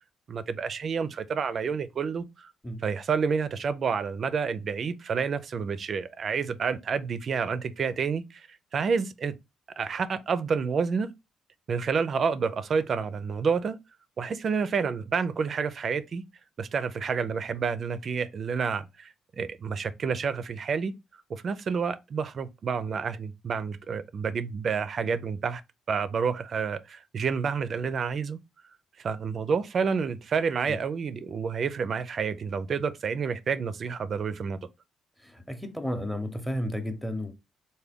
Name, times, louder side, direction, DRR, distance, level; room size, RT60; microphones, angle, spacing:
voice 1, 0.3-2.5 2.8-8.5 8.7-9.3 9.8-11.1 11.7-13.8 14.2-16.2 16.6-20.9 21.3-25.6 25.9-28.4 29.0-34.6, right 5 dB, 50° right, 0.4 m, -29 dB
voice 2, 35.2-37.3, equal, 5° left, 0.7 m, -32 dB
3.4 x 2.2 x 3.5 m
cardioid pair, 90°, 0 cm